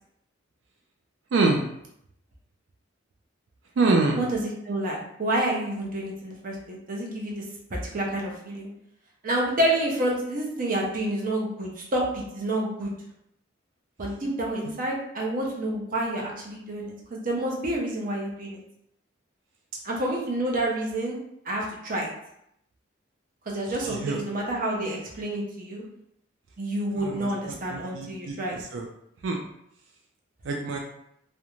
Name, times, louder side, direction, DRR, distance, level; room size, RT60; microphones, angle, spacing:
voice 1, 1.3-1.6 3.8-4.2 23.7-24.2 27.0-28.9 29.2-29.4 30.4-30.8, right 3 dB, 85° right, 1 dB, 0.4 m, -26 dB
voice 2, 4.6-7.4 7.7-8.7 9.2-12.9 14.0-16.8 17.1-18.6 19.8-21.2 21.5-22.1 23.5-25.8 26.6-28.6, right 1 dB, 45° right, -2 dB, 0.6 m, -28 dB
2.5 x 2.1 x 3.0 m, 0.75 s
head